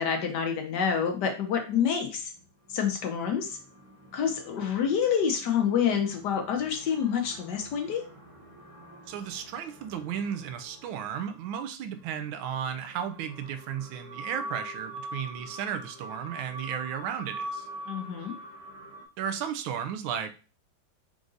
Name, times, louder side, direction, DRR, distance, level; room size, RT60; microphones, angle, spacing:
voice 1, 0.0-2.3 2.7-3.6 4.1-8.0 17.9-18.4, left 7 dB, 65° left, 4 dB, 1.2 m, -27 dB
sound 1, 2.1-11.3 12.0-19.0, right 1 dB, 25° right, 0.7 m, -44 dB
voice 2, 9.1-17.7 19.2-20.3, right 8 dB, 85° right, 8 dB, 1.4 m, -34 dB
4.7 x 2.6 x 3.8 m, 0.35 s
omnidirectional pair, 2.2 m